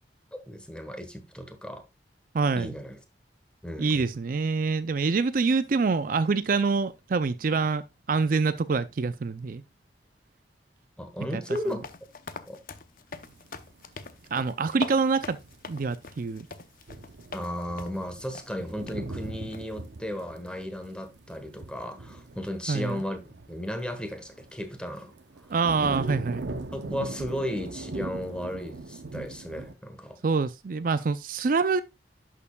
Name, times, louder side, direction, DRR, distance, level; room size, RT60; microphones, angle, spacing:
voice 1, 0.3-1.9 2.6-3.0 3.6-4.1 11.0-11.9 12.4-12.6 17.3-23.2 23.5-25.1 25.4-25.5 26.7-30.2, equal, 5° left, 1.2 m, -35 dB
voice 2, 2.3-2.8 3.8-9.6 11.2-11.4 14.3-15.4 15.7-16.5 22.7-23.0 25.5-26.5 30.2-31.8, right 4 dB, 50° right, 0.4 m, -26 dB
sound 1, 11.5-17.5 17.8-18.0 18.3-18.5 18.9-19.0 19.5-19.8, left 4 dB, 50° left, 0.7 m, -42 dB
sound 2, 13.1-14.7 15.0-15.6 15.9-16.1 16.4-16.5 16.9-24.6 25.0-29.7, right 2 dB, 85° right, 0.8 m, -40 dB
11.0 x 6.6 x 2.3 m
head